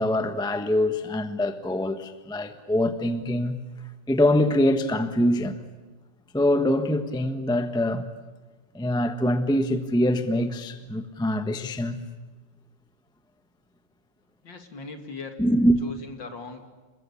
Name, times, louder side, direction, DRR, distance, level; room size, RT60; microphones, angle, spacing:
voice 1, 0.0-3.6 4.1-5.6 6.3-8.0 8.7-12.0 15.4-15.8, left 1 dB, 5° left, 9 dB, 0.8 m, -24 dB
voice 2, 14.4-15.4 15.8-16.7, left 4 dB, 55° left, 5 dB, 3.2 m, -39 dB
28.5 x 21.5 x 8.5 m, 1.3 s
omnidirectional pair, 2.4 m